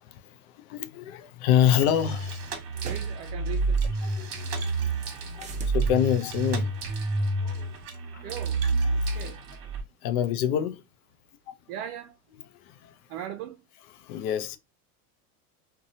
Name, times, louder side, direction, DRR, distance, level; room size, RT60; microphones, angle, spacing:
voice 1, 0.0-2.5 4.0-6.7 7.4-7.7 8.1-8.4 8.7-9.3 10.0-10.8 11.5-11.6 12.4-13.0 13.9-14.6, left 10 dB, 75° left, 0.6 m, -28 dB
sound 1, 1.4-1.5 2.8-3.1 5.3-5.8, right 4 dB, 20° right, 0.3 m, -42 dB
sound 2, 1.8-9.8, right 3 dB, 50° right, 1.1 m, -29 dB
voice 2, 2.9-3.9 8.2-8.6 9.1-9.4 11.7-12.1 13.1-13.6, right 10 dB, 70° right, 0.5 m, -38 dB
2.7 x 2.3 x 2.7 m
supercardioid pair, 105°, 44 cm